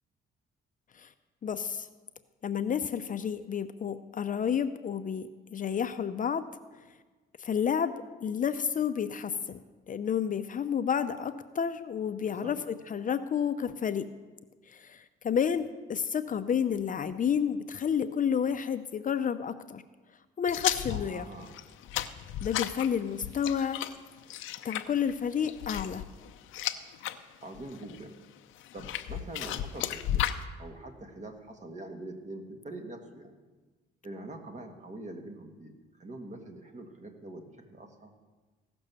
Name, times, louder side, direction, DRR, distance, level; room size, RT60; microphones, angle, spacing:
voice 1, 1.4-1.9 2.4-6.4 7.4-7.9 8.2-9.6 9.9-14.1 14.7-19.8 20.4-21.3 22.4-23.8 24.6-26.0, left 7 dB, 40° left, 10 dB, 0.6 m, -30 dB
voice 2, 12.2-12.6 20.9-21.6 27.4-28.2 28.7-30.3 30.6-33.3 34.0-38.1, right 2 dB, 35° right, 5 dB, 1.6 m, -44 dB
sound 1, 20.5-27.2 27.5-28.0 28.6-30.4, left 12 dB, 90° left, 0.6 m, -34 dB
16.0 x 6.1 x 6.8 m, 1.3 s
cardioid pair, 90°, 20 cm